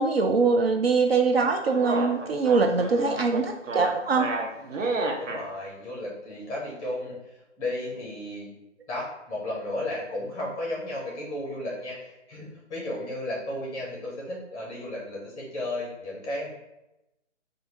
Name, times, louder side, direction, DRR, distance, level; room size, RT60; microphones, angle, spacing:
voice 1, 0.0-4.3, right 4 dB, 55° right, 4 dB, 0.4 m, -23 dB
sound 1, 1.3-5.4, right 3 dB, 80° right, 0.9 m, -31 dB
voice 2, 5.2-7.1 7.6-8.5 8.9-16.5, left 1 dB, 10° left, -4 dB, 1.0 m, -34 dB
3.3 x 2.7 x 4.3 m, 0.94 s
hypercardioid pair, 150°, 37 cm